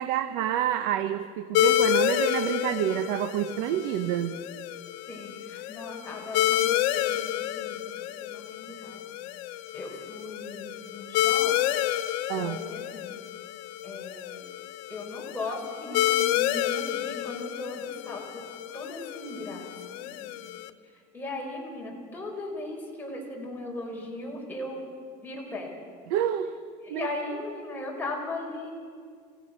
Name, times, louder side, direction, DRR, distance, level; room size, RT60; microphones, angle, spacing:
voice 1, 0.0-4.4 12.3-12.6 26.1-26.5 26.9-27.1, right 11 dB, 85° right, 10 dB, 0.9 m, -28 dB
sound 1, 1.5-20.7, left 13 dB, 90° left, 0.9 m, -29 dB
voice 2, 5.1-7.8 8.2-9.2 9.7-11.5 12.4-13.2 13.8-14.5 14.9-18.4 18.7-20.3 21.1-24.9 25.2-25.7 26.8-28.7, left 2 dB, 10° left, -2 dB, 5.0 m, -38 dB
28.0 x 16.5 x 6.3 m, 2.1 s
cardioid pair, 130°, 17 cm